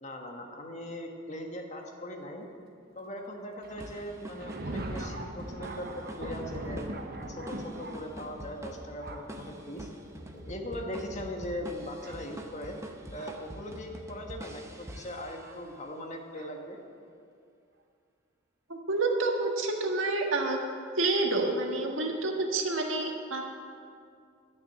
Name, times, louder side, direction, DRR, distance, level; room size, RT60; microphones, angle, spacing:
voice 1, 0.0-2.5 2.9-6.8 7.3-9.9 10.5-12.8 13.1-16.8, left 1 dB, 35° left, 2 dB, 1.4 m, -40 dB
Thunder, 3.6-13.5 14.3-14.4 15.4-15.6 16.3-16.5, right 1 dB, 55° right, 1.0 m, -42 dB
sound 1, 3.8-15.8, right 1 dB, 15° right, 0.8 m, -46 dB
voice 2, 18.7-20.6 20.9-23.4, right 2 dB, 80° right, 1 dB, 1.6 m, -28 dB
12.0 x 6.4 x 8.5 m, 2.3 s
head